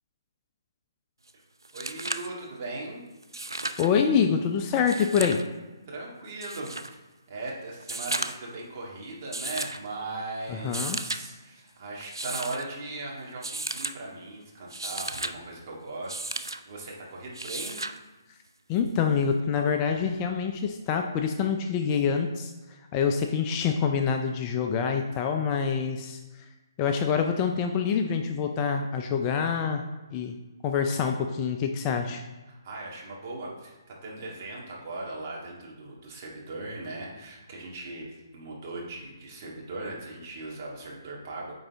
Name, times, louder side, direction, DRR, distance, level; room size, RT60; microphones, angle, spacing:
sound 1, 1.3-1.4 1.6-2.3 3.2-3.9 4.8-5.4 6.4-6.9 7.8-8.5 9.3-9.8 10.6-11.2 12.0-12.6 13.4-14.0 14.6-15.3 16.1-16.6 17.3-18.0 19.4-19.5, right 2 dB, 85° right, 0.4 m, -34 dB
voice 1, 1.7-3.0 5.9-7.0 7.3-16.3 16.7-17.8 32.5-38.1 38.3-41.5, right 2 dB, 40° right, -3 dB, 1.9 m, -38 dB
voice 2, 3.8-5.4 10.5-11.0 18.7-22.5 22.9-26.2 26.8-29.8 30.1-30.3 30.6-32.2, left 6 dB, 25° left, 4 dB, 0.4 m, -26 dB
8.8 x 3.9 x 3.5 m, 1.1 s
figure-of-eight pair, 140°, 2 cm